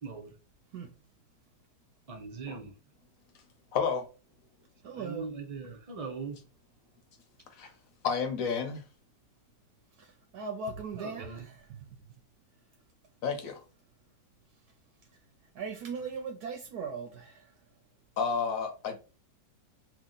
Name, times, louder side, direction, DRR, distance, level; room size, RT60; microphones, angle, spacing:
voice 1, 0.0-0.3 2.1-2.7 4.8-6.4 11.0-11.5, right 4 dB, 45° right, 0.4 m, -40 dB
voice 2, 3.7-4.1 7.5-7.7 8.0-8.8 13.2-13.6 18.2-19.0, left 6 dB, 60° left, 1.1 m, -31 dB
voice 3, 4.8-5.3 10.0-10.1 10.3-11.8 15.5-17.5, right 5 dB, 75° right, 1.1 m, -38 dB
3.0 x 2.8 x 3.8 m
omnidirectional pair, 1.8 m